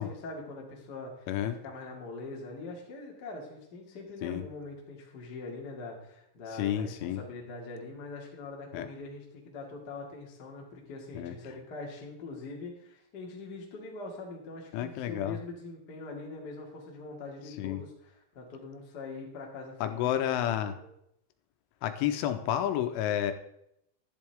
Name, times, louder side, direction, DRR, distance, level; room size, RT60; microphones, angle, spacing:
voice 1, 0.0-20.3 20.7-20.9, left 3 dB, 45° left, -1 dB, 1.4 m, -43 dB
voice 2, 1.3-1.6 4.2-4.5 6.5-7.2 8.7-8.9 11.1-11.3 14.7-15.4 17.6-17.8 19.8-20.8 21.8-23.3, left 11 dB, 90° left, 8 dB, 3.2 m, -30 dB
11.0 x 11.0 x 3.5 m, 0.76 s
omnidirectional pair, 5.6 m